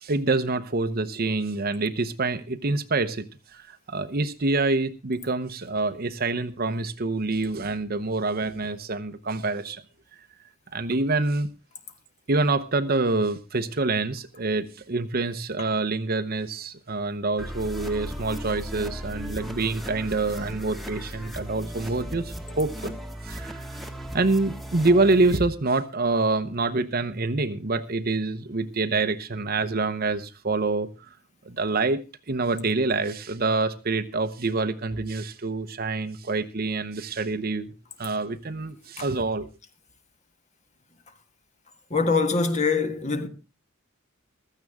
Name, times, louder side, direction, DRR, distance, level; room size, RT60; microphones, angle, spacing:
voice 1, 0.0-3.2 3.5-9.8 10.7-11.5 12.3-23.0 23.2-23.7 24.1-30.9 31.4-32.0 32.3-37.7 38.0-39.5, right 3 dB, 45° right, 0.9 m, -26 dB
sound 1, 17.4-25.4, equal, ahead, 1.5 m, -37 dB
voice 2, 41.9-43.3, left 4 dB, 35° left, 1.5 m, -24 dB
15.5 x 13.5 x 3.6 m
head